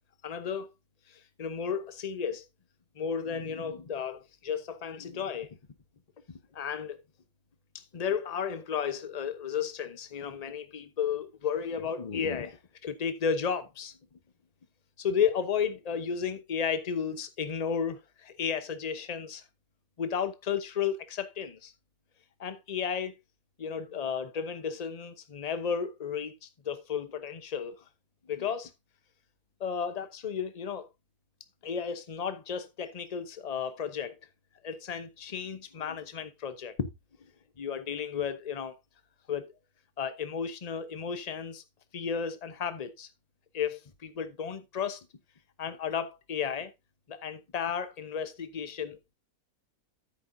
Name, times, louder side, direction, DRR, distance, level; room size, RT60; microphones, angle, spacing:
voice 1, 0.2-0.7 1.1-2.4 3.0-5.5 6.3-7.0 7.9-13.9 15.0-19.4 20.0-21.7 22.4-23.2 23.6-27.7 28.3-28.7 29.6-30.9 31.6-34.2 34.6-36.9 37.6-38.7 39.3-39.5 40.0-41.6 41.9-43.1 43.5-45.0 45.6-46.7 47.1-49.0, left 7 dB, 30° left, 0.8 m, -33 dB
10.5 x 8.6 x 2.7 m
omnidirectional pair, 1.6 m